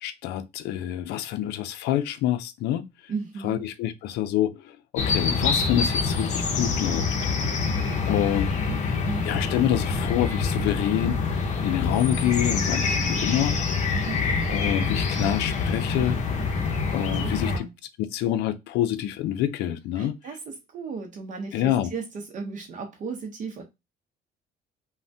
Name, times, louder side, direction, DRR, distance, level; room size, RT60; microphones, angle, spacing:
voice 1, 0.0-2.9 3.4-7.1 8.0-8.5 9.3-13.6 14.5-16.2 16.9-17.7 18.0-20.2 21.5-21.9, left 11 dB, 80° left, 0.4 m, -27 dB
voice 2, 3.1-3.6 7.6-9.3 13.9-14.3 17.2-17.7 20.0-23.6, right 4 dB, 50° right, 0.7 m, -36 dB
sound 1, 5.0-17.6, left 4 dB, 45° left, 0.7 m, -26 dB
3.2 x 2.1 x 2.6 m
cardioid pair, 110°, 17 cm